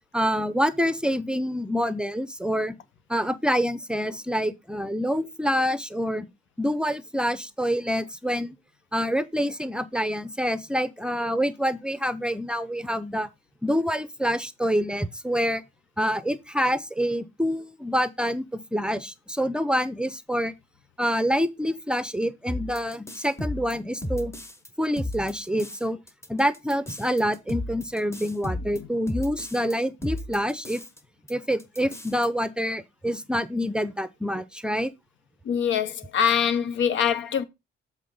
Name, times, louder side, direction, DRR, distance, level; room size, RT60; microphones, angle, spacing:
voice 1, 0.1-2.8 3.1-6.3 6.6-8.5 8.9-13.3 13.6-15.6 16.0-20.5 21.0-24.3 24.8-26.0 26.3-30.8 31.3-34.9, equal, 5° right, 0.6 m, -26 dB
sound 1, 22.5-24.7 25.0-25.8 26.1-29.7 30.0-31.0 31.3-31.4 31.6-32.3, left 1 dB, 15° left, 1.1 m, -34 dB
voice 2, 35.5-37.4, left 8 dB, 75° left, 0.8 m, -24 dB
7.5 x 3.5 x 5.4 m
cardioid pair, 90°, 20 cm